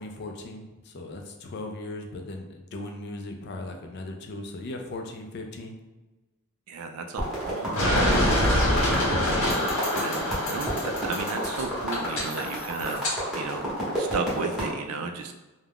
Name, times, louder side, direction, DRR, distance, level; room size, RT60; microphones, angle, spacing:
voice 1, 0.0-5.7, left 2 dB, 50° left, 4 dB, 0.3 m, -38 dB
voice 2, 6.7-9.3 10.0-13.1 13.3-13.7 14.0-15.3, right 4 dB, 75° right, 6 dB, 0.3 m, -34 dB
sound 1, 7.2-14.7, equal, ahead, 0.8 m, -31 dB
sound 2, 7.8-13.2, left 1 dB, 65° left, 0.9 m, -26 dB
2.4 x 2.1 x 3.4 m, 1.1 s
head